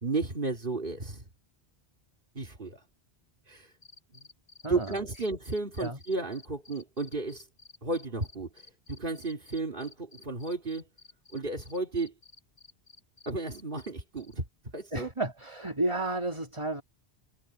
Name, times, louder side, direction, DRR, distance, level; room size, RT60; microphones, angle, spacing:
voice 1, 0.0-1.3 2.3-2.8 3.5-3.7 4.1-4.3 4.7-7.4 7.8-10.9 11.3-12.1 13.3-14.5 14.7-15.1, right 3 dB, 55° right, 2.9 m, -33 dB
sound 1, 3.8-13.9 14.2-14.3, left 4 dB, 45° left, 7.9 m, -54 dB
voice 2, 14.9-16.8, right 2 dB, 25° right, 2.4 m, -32 dB
omnidirectional pair, 1.1 m